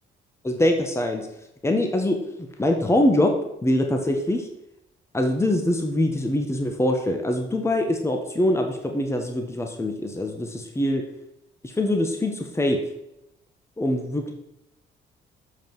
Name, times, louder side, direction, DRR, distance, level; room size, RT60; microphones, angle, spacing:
voice 1, 0.4-1.3 1.6-3.3 3.6-4.5 5.1-11.1 11.6-12.8 13.8-14.3, left 1 dB, 15° left, 4 dB, 1.3 m, -23 dB
7.4 x 5.5 x 6.1 m, 0.83 s
cardioid pair, 90°, 20 cm